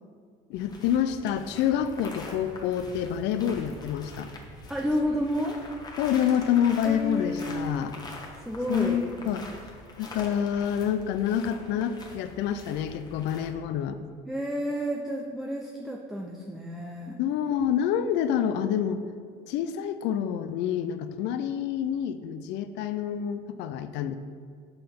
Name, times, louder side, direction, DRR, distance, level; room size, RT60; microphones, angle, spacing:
voice 1, 0.5-4.3 6.0-7.9 8.7-9.5 10.0-14.0 17.2-19.0 19.5-24.2, left 9 dB, 65° left, 10 dB, 0.4 m, -27 dB
sound 1, 0.5-13.5, left 2 dB, 20° left, 1.0 m, -44 dB
voice 2, 4.7-5.6 6.8-7.9 8.5-9.0 14.3-17.2, equal, ahead, 0 dB, 0.4 m, -31 dB
5.5 x 5.4 x 4.4 m, 2.1 s
cardioid pair, 110°, 20 cm